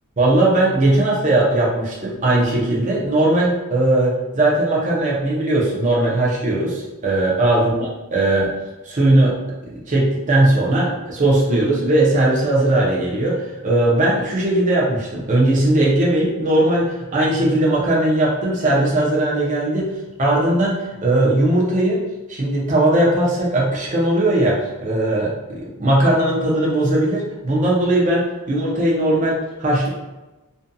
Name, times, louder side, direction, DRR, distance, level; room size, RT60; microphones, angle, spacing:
voice 1, 0.2-8.5 8.8-9.3 9.9-19.9 20.2-22.0 22.3-29.9, right 1 dB, 35° right, -4 dB, 0.6 m, -18 dB
2.6 x 2.5 x 2.2 m, 1.1 s
head